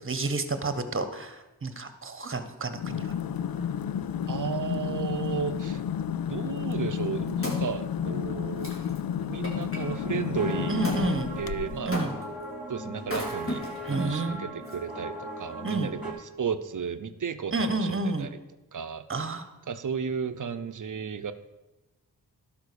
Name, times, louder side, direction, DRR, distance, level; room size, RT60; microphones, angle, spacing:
voice 1, 0.0-3.1 10.7-11.3 11.9-12.1 13.9-14.4 15.6-15.9 17.5-18.3 19.1-19.5, right 3 dB, 35° right, 10 dB, 1.3 m, -30 dB
sound 1, 2.7-11.9, left 8 dB, 70° left, 0.5 m, -31 dB
voice 2, 4.3-5.8 6.3-8.7 9.3-11.9 12.7-18.3 18.7-19.3 19.7-21.3, right 6 dB, 55° right, 10 dB, 0.8 m, -34 dB
Wood, 7.0-9.8 10.8-11.1 11.9-12.4 13.0-14.0 14.7-14.8, equal, 35° left, 3.3 m, -36 dB
sound 2, 9.7-16.1, right 1 dB, ahead, 4.0 m, -38 dB
11.5 x 5.4 x 6.9 m, 1.1 s
cardioid pair, 50°, 37 cm